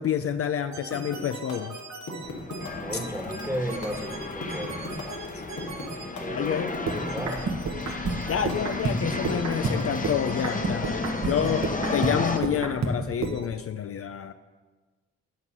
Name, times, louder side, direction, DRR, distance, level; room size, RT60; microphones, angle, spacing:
voice 1, 0.0-1.8 2.9-3.0 5.3-5.4 6.3-6.7 8.3-14.3, left 9 dB, 50° left, 10 dB, 0.4 m, -28 dB
sound 1, 0.7-6.1 6.9-13.5, right 3 dB, 65° right, 1.1 m, -32 dB
sound 2, 0.9-10.1, left 3 dB, 80° left, 1.6 m, -38 dB
sound 3, 2.2-12.4, left 3 dB, 30° left, 0.8 m, -33 dB
voice 2, 2.8-5.0 6.2-6.7 7.0-7.5 11.4-11.6, right 1 dB, 10° right, 2 dB, 1.4 m, -34 dB
9.6 x 4.0 x 6.0 m, 1.3 s
cardioid pair, 55°, 29 cm